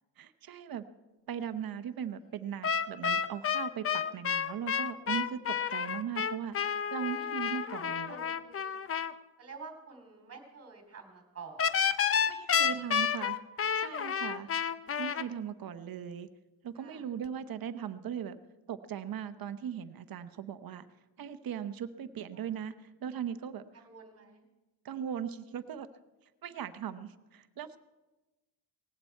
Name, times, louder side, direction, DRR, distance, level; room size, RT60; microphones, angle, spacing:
voice 1, 0.2-0.8 1.3-6.6 6.9-8.1 12.0-14.5 15.0-16.3 16.6-18.4 18.7-20.8 21.2-22.7 23.0-23.9 24.8-25.9 26.4-27.8, right 8 dB, 50° right, 11 dB, 0.9 m, -39 dB
sound 1, 2.6-9.1 11.6-15.2, left 7 dB, 30° left, 0.5 m, -30 dB
voice 2, 8.1-8.9 9.4-11.9 12.6-13.2 14.4-14.8 16.8-17.0 22.3-22.5 23.9-24.4, right 4 dB, 30° right, 4 dB, 2.8 m, -50 dB
18.5 x 15.5 x 4.5 m, 1.1 s
wide cardioid pair, 175°, 45 cm